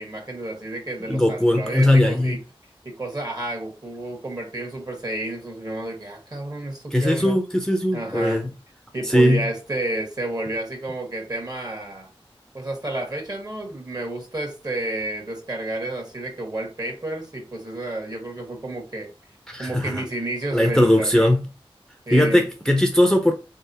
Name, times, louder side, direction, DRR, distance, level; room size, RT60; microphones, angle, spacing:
voice 1, 0.0-2.4 2.8-7.4 7.9-8.5 8.9-12.1 12.5-19.1 19.6-21.3 22.1-22.4, right 1 dB, 40° right, 1.7 m, -31 dB
voice 2, 1.1-2.4 6.9-8.5 9.0-9.5 19.5-20.0 20.5-21.4 22.1-23.3, left 1 dB, 5° left, 0.6 m, -19 dB
3.7 x 3.5 x 2.8 m
wide cardioid pair, 60°, 10 cm